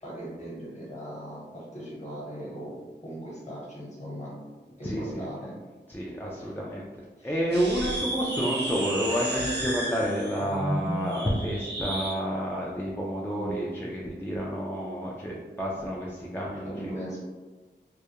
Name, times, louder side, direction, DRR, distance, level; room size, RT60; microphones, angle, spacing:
voice 1, 0.0-2.8 3.0-4.3 4.8-5.5 6.4-6.5 7.2-7.4 16.7-17.2, equal, 40° left, -6 dB, 1.0 m, -39 dB
voice 2, 4.8-5.3 5.9-6.9 7.2-16.9, equal, 10° left, -4 dB, 0.3 m, -30 dB
sound 1, 7.5-12.2, right 1 dB, 65° right, 0.6 m, -32 dB
2.3 x 2.0 x 2.8 m, 1.3 s
wide cardioid pair, 70°, 19 cm